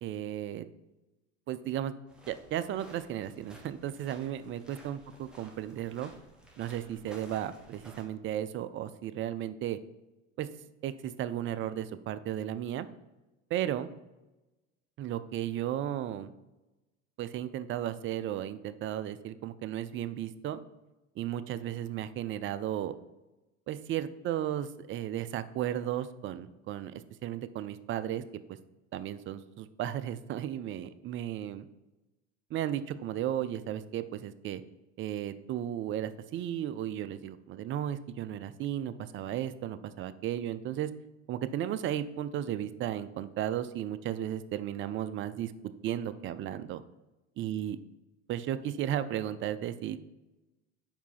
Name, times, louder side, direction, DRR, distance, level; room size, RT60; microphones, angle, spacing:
voice 1, 0.0-0.7 1.5-1.9 2.3-6.1 6.6-9.8 10.4-10.5 10.8-12.9 13.5-13.9 15.0-16.3 17.2-20.6 21.2-22.9 23.7-28.2 28.9-31.7 32.5-34.6 35.0-40.9 41.3-45.5 45.8-46.8 47.4-47.8 48.3-50.0, right 11 dB, 35° right, 13 dB, 0.4 m, -34 dB
sound 1, 2.1-8.0, right 1 dB, ahead, 1.5 m, -55 dB
4.7 x 4.7 x 5.5 m, 1.1 s
hypercardioid pair, 80°, 36 cm